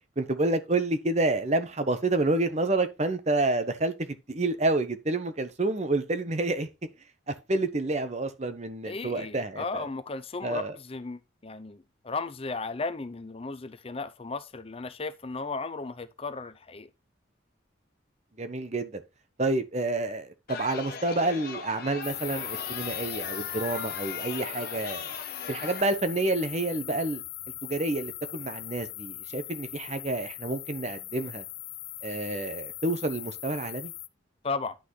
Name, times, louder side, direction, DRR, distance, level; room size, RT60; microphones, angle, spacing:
voice 1, 0.2-6.7 7.3-9.8 10.4-10.7 18.4-19.0 19.4-25.1 25.5-27.2 27.6-31.4 32.0-33.9, right 2 dB, 35° right, 0.9 m, -29 dB
voice 2, 8.8-16.9 34.4-34.8, left 3 dB, 30° left, 0.5 m, -35 dB
Chatter, 20.5-25.8, left 5 dB, 50° left, 1.5 m, -39 dB
sound 1, 22.0-34.1, left 17 dB, 80° left, 0.6 m, -39 dB
10.0 x 6.0 x 3.2 m
head